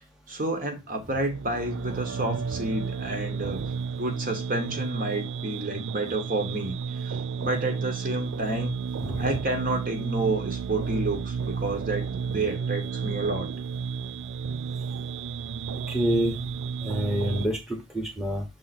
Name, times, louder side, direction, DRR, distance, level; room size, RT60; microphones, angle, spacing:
voice 1, 0.3-3.6 3.9-8.7 9.2-13.5, right 2 dB, 40° right, 1.3 m, -30 dB
sound 1, 1.1-17.5, right 6 dB, 65° right, 0.3 m, -32 dB
voice 2, 9.0-9.3 15.9-16.3 16.8-18.4, equal, 5° right, 1.2 m, -27 dB
6.6 x 3.7 x 4.3 m
head